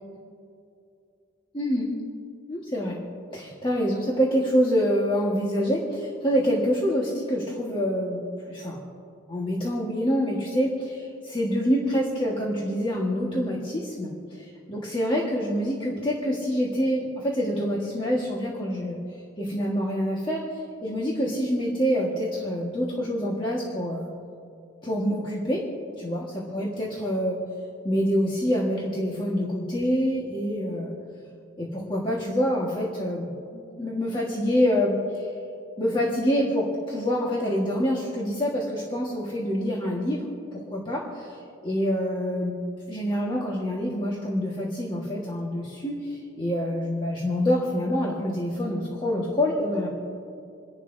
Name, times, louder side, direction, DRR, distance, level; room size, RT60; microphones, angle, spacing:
voice 1, 1.5-1.9 2.5-3.0 3.3-8.8 9.3-19.0 19.4-20.4 20.8-24.1 24.8-25.6 26.0-27.4 27.8-30.9 31.6-35.3 35.8-41.3 41.6-42.6 42.9-49.9, equal, 25° left, -4 dB, 1.5 m, -26 dB
28.5 x 11.0 x 2.7 m, 2.6 s
head